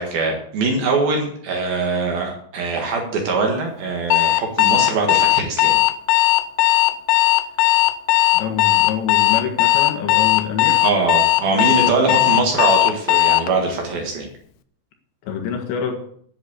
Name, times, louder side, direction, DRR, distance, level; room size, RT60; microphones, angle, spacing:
voice 1, 0.0-5.8 10.8-14.3, right 3 dB, 60° right, 1 dB, 3.1 m, -22 dB
Alarm, 4.1-13.5, left 17 dB, 90° left, 3.4 m, -16 dB
voice 2, 8.3-10.8 11.5-12.4 15.2-16.0, left 7 dB, 70° left, 4 dB, 3.7 m, -27 dB
11.0 x 7.2 x 8.4 m, 0.63 s
omnidirectional pair, 5.7 m